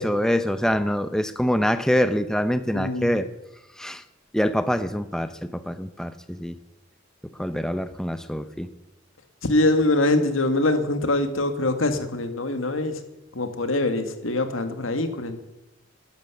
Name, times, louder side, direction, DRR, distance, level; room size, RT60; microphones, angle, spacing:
voice 1, 0.0-3.3 3.8-4.0 4.3-6.6 7.4-8.7, equal, 5° left, 11 dB, 0.6 m, -25 dB
voice 2, 2.7-3.1 9.4-13.0 13.3-15.4, left 2 dB, 85° left, 9 dB, 1.7 m, -23 dB
12.0 x 10.5 x 8.1 m, 0.95 s
head